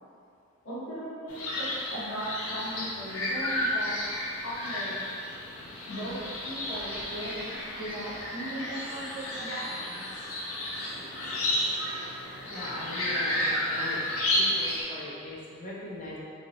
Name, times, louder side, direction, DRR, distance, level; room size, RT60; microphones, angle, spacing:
voice 1, 0.6-3.9 4.4-4.9 5.9-10.0, right 1 dB, 70° left, -11 dB, 1.1 m, -38 dB
sound 1, 1.3-14.8, left 1 dB, 90° left, 0.6 m, -32 dB
sound 2, 6.1-12.1, equal, 35° right, 0.8 m, -51 dB
voice 2, 12.5-14.0 14.3-16.2, left 1 dB, 35° left, -6 dB, 0.5 m, -40 dB
3.0 x 2.7 x 2.5 m, 2.3 s
head